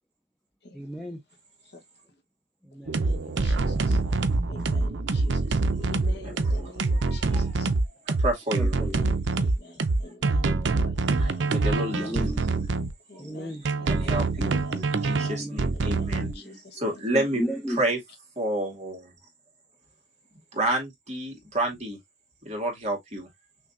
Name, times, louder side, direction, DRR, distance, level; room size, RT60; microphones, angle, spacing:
voice 1, 0.7-1.2 2.6-3.0 4.8-5.1 6.3-7.3 8.6-9.3 11.7-12.8 13.2-13.8 14.2-14.9 15.2-16.6 17.1-17.9, equal, ahead, 0.6 m, -37 dB
voice 2, 2.9-4.2 4.5-7.7 8.8-9.1 9.4-10.4 10.8-11.5 12.0-12.1 13.1-13.5 13.8-15.4 15.7-16.8, left 3 dB, 55° left, 1.2 m, -47 dB
sound 1, 2.9-12.9 13.7-16.3, right 3 dB, 60° right, 0.6 m, -25 dB
voice 3, 6.2-7.6 8.1-8.9 11.2-12.3 13.9-14.6 14.9-16.3 16.8-17.4 17.8-18.0 18.4-19.1 20.5-22.0 22.4-23.3, right 1 dB, 35° right, 2.3 m, -30 dB
6.2 x 2.9 x 2.6 m
head